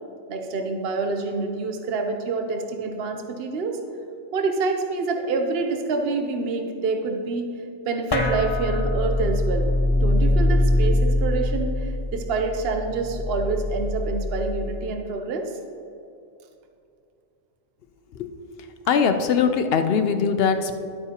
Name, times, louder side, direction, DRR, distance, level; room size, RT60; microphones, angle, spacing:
voice 1, 0.3-3.8 4.3-7.5 7.9-9.7 10.0-15.5, right 3 dB, 60° right, 4 dB, 0.9 m, -27 dB
sound 1, 8.1-14.8, left 1 dB, 30° left, 0.5 m, -23 dB
voice 2, 18.9-20.7, left 6 dB, 60° left, 8 dB, 0.8 m, -21 dB
11.5 x 8.5 x 2.9 m, 2.6 s
omnidirectional pair, 1.2 m